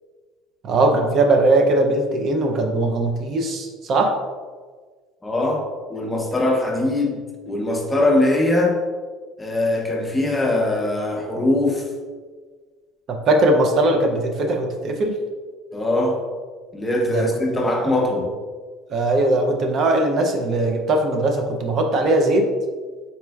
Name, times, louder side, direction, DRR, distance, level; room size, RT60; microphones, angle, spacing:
voice 1, 0.6-4.1 13.3-15.1 17.1-17.6 18.9-22.4, right 2 dB, 45° right, 3 dB, 0.5 m, -20 dB
voice 2, 5.2-7.2 7.5-8.8 9.4-11.9 15.7-16.2 16.7-18.3, left 2 dB, 10° left, 1 dB, 0.6 m, -21 dB
4.1 x 3.2 x 2.3 m, 1.5 s
supercardioid pair, 105°, 0 cm